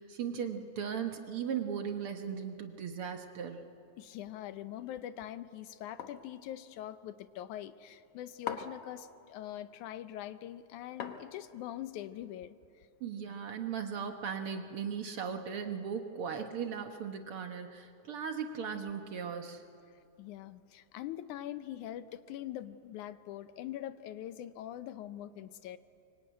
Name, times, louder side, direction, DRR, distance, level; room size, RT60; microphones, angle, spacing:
voice 1, 0.0-3.6 13.0-19.6, right 7 dB, 60° right, 5 dB, 1.7 m, -37 dB
voice 2, 4.0-12.9 20.2-25.8, left 12 dB, 85° left, 12 dB, 2.3 m, -43 dB
sound 1, 6.0-6.3 8.5-8.9 11.0-11.6, left 8 dB, 60° left, 1.9 m, -40 dB
24.0 x 24.0 x 9.2 m, 2.6 s
omnidirectional pair, 3.4 m